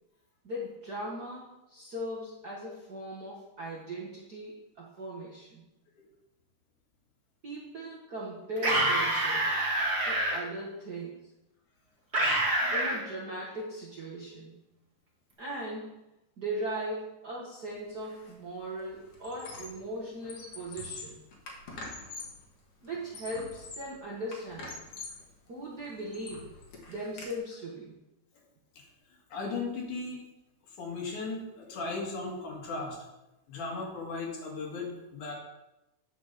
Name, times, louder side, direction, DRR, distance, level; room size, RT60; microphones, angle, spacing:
voice 1, 0.4-5.6 7.4-9.7 10.0-11.3 12.7-14.5 15.4-16.0 16.4-21.2 22.8-24.8 25.5-26.5 26.9-28.0, right 1 dB, 50° right, -5 dB, 1.2 m, -39 dB
sound 1, 8.6-10.4 12.1-13.0, right 1 dB, 25° right, 1.8 m, -27 dB
Squeak, 18.0-18.3 18.6-19.9 20.2-22.4 22.9-24.0 24.3-25.3 25.7-27.3, left 3 dB, 55° left, 2.4 m, -44 dB
voice 2, 29.3-30.2 30.8-33.0 33.5-35.3, left 3 dB, 70° left, -1 dB, 3.4 m, -36 dB
9.5 x 5.1 x 6.7 m, 0.95 s
omnidirectional pair, 3.6 m